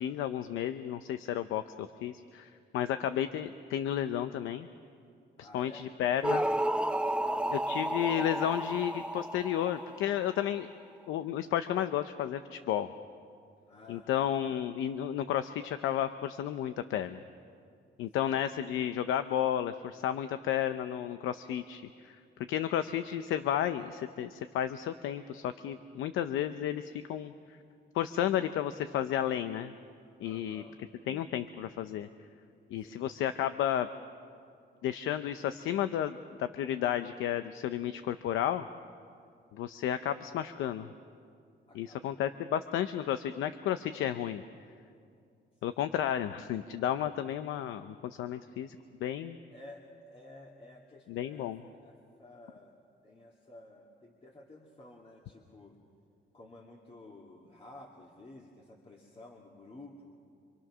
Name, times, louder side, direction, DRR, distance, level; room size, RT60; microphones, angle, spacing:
voice 1, 0.0-4.7 5.4-6.4 7.5-10.7 11.1-12.9 13.9-17.2 18.0-22.2 22.5-27.3 27.9-29.7 30.2-30.6 31.1-32.1 32.7-33.9 34.8-38.6 39.5-40.9 41.7-44.4 45.6-49.4 51.1-51.6, left 10 dB, 85° left, 10 dB, 0.7 m, -32 dB
voice 2, 5.4-6.7 7.1-7.5 13.7-14.1 18.2-18.3 30.2-30.9 32.8-33.1 41.7-42.1 45.7-45.9 49.5-52.8 53.0-55.8 56.3-60.2, left 2 dB, 30° left, -1 dB, 2.4 m, -53 dB
sound 1, 6.2-10.5, right 1 dB, 5° right, 0.6 m, -32 dB
26.0 x 25.0 x 6.2 m, 2.3 s
cardioid pair, 90°, 20 cm